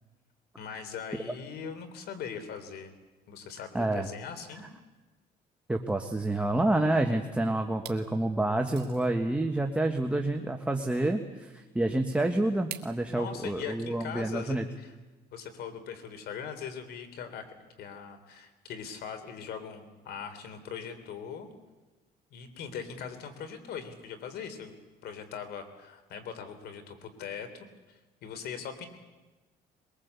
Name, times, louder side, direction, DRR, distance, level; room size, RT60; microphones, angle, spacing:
voice 1, 0.6-2.9 3.3-4.7 13.1-14.9 15.3-17.5 17.8-21.5 22.3-24.8 25.0-28.9, left 7 dB, 70° left, 9 dB, 3.6 m, -41 dB
voice 2, 3.7-4.1 5.7-14.6, right 2 dB, 5° right, 3 dB, 1.5 m, -28 dB
sound 1, 7.1-7.3 7.7-8.1 8.6-9.1 10.6-10.7 12.7-13.0, right 13 dB, 75° right, 1.9 m, -43 dB
22.5 x 22.0 x 8.3 m, 1.2 s
cardioid pair, 110°, 17 cm